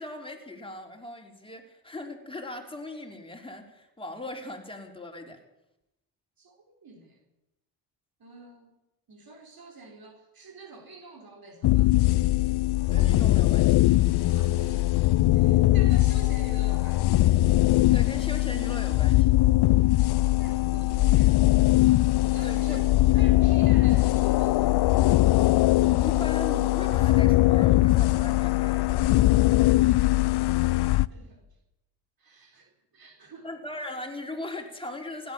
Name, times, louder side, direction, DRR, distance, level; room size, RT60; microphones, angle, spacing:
voice 1, 0.0-5.4 12.9-13.8 17.9-19.3 22.4-23.1 26.0-29.1 33.4-35.3, left 2 dB, 10° left, 3 dB, 3.8 m, -39 dB
voice 2, 6.4-7.2 8.2-8.7 9.1-12.2 14.3-14.9 15.3-17.3 20.4-21.4 22.3-22.9 23.1-24.8 31.1-31.5 32.2-33.5, right 3 dB, 45° right, 2 dB, 3.8 m, -48 dB
sound 1, 11.6-31.1, left 17 dB, 55° left, 0.6 m, -21 dB
17.0 x 12.0 x 7.2 m, 0.91 s
supercardioid pair, 65°, 48 cm